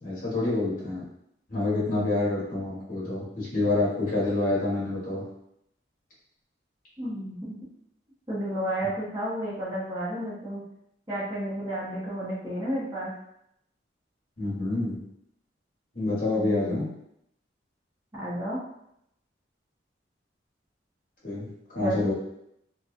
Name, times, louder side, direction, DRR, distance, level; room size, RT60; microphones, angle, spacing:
voice 1, 0.0-1.0 1.5-5.2 14.4-15.0 15.9-16.9 21.2-21.5 21.7-22.1, left 2 dB, 45° left, -8 dB, 1.1 m, -27 dB
voice 2, 7.0-7.5 8.3-10.6 11.1-13.1 16.3-16.8 18.1-18.6 21.8-22.1, right 1 dB, 20° right, -11 dB, 0.8 m, -31 dB
2.7 x 2.3 x 2.4 m, 0.76 s
head